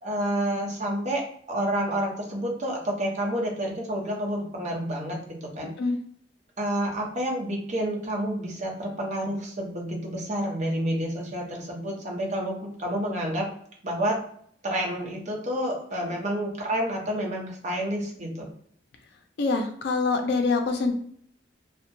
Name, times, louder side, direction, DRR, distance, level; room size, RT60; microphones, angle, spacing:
voice 1, 0.0-5.7 6.6-13.5 13.8-14.2 14.6-18.5, right 1 dB, 40° right, -1 dB, 0.7 m, -29 dB
voice 2, 19.4-20.9, left 3 dB, 65° left, 5 dB, 0.4 m, -25 dB
2.7 x 2.1 x 2.6 m, 0.63 s
head